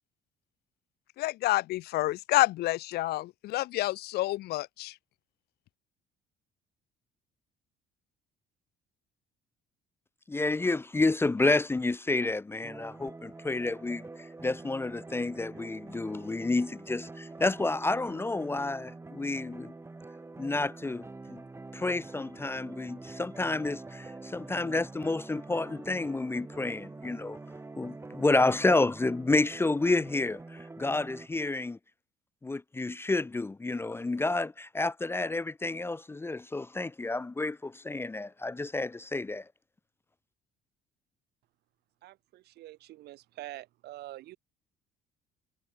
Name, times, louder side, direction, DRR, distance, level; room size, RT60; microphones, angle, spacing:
voice 1, 1.2-4.9, left 17 dB, 70° left, 0.5 m, -28 dB
voice 2, 10.3-14.1 14.4-19.7 20.4-21.4 21.7-27.4 27.8-31.8 32.4-39.4, left 2 dB, 15° left, 0.6 m, -30 dB
sound 1, 12.6-31.3, right 3 dB, 15° right, 1.8 m, -46 dB
voice 3, 42.0-44.4, right 16 dB, 75° right, 2.6 m, -46 dB
cardioid pair, 110°, 17 cm